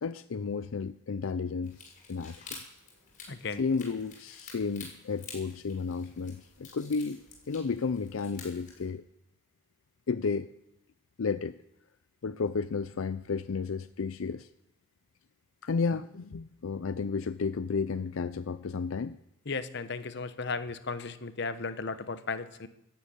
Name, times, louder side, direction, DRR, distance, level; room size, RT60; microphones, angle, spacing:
voice 1, 0.0-2.6 3.5-9.0 10.1-10.5 11.2-11.6 12.2-14.5 15.6-19.2, left 5 dB, 75° left, 13 dB, 0.5 m, -32 dB
sound 1, 1.6-8.8, left 4 dB, 40° left, 6.1 m, -50 dB
voice 2, 3.3-3.6 19.5-22.7, left 4 dB, 55° left, 12 dB, 1.0 m, -35 dB
13.5 x 12.0 x 8.5 m, 0.84 s
head